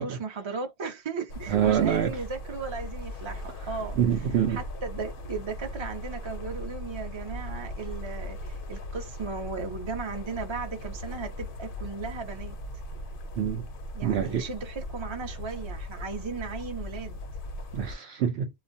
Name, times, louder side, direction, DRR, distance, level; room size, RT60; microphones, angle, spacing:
voice 1, 0.0-4.0 4.5-12.6 13.9-17.2, right 4 dB, 30° right, 0.6 m, -36 dB
sound 1, 1.3-18.0, left 1 dB, 55° left, 0.6 m, -38 dB
voice 2, 1.5-2.2 4.0-4.6 13.4-13.7 14.0-14.5 17.7-18.5, right 9 dB, 65° right, 0.7 m, -25 dB
2.4 x 2.1 x 2.5 m
omnidirectional pair, 1.3 m